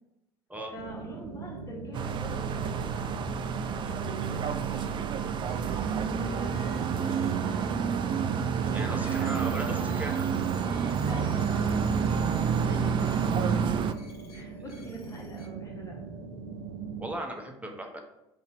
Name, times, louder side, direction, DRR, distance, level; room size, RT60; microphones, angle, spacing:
voice 1, 0.7-5.0 6.2-8.4 8.7-10.3 11.0-13.8 14.3-16.0, equal, 25° left, -1 dB, 1.4 m, -44 dB
sound 1, 0.7-17.1, right 5 dB, 85° right, 0.6 m, -40 dB
sound 2, 1.9-13.9, right 7 dB, 40° right, 0.4 m, -29 dB
sound 3, 5.5-15.5, left 3 dB, 90° left, 1.0 m, -54 dB
voice 2, 8.7-10.2 17.0-18.0, right 1 dB, 10° right, 2 dB, 0.9 m, -37 dB
4.0 x 2.8 x 4.2 m, 0.89 s
hypercardioid pair, 70°, 13 cm